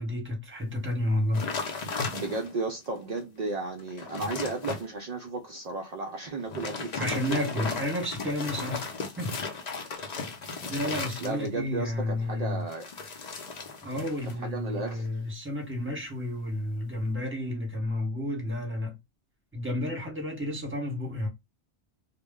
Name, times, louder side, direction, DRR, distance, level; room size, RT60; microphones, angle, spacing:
voice 1, 0.0-1.4 7.0-8.9 9.2-9.4 10.1-10.2 10.7-12.6 13.8-19.0 19.5-21.3, left 1 dB, 10° right, 0.9 m, -31 dB
sound 1, 1.3-2.7 3.2-3.3 3.7-4.9 6.4-11.7 12.7-14.4 14.7-15.1, left 4 dB, 50° left, 0.6 m, -36 dB
voice 2, 2.1-7.7 11.2-12.9 14.4-15.2, right 3 dB, 60° right, 0.4 m, -34 dB
2.1 x 2.0 x 3.5 m
omnidirectional pair, 1.1 m